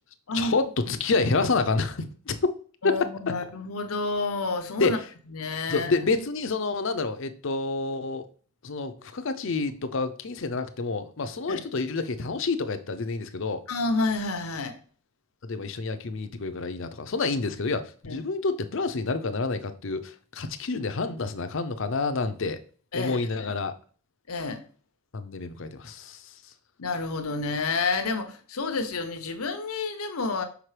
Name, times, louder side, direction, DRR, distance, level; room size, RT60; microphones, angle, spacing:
voice 1, 0.3-2.5 4.8-5.0 5.7-8.3 8.6-13.6 15.4-17.8 18.1-22.6 22.9-23.7 25.1-26.3, left 3 dB, 60° left, 0.6 m, -28 dB
voice 2, 2.8-5.0 5.3-5.9 11.5-11.6 13.7-14.8 18.1-18.2 22.9-23.5 24.3-24.6 26.8-30.4, left 3 dB, 90° left, 0.9 m, -29 dB
6.0 x 5.0 x 3.3 m
head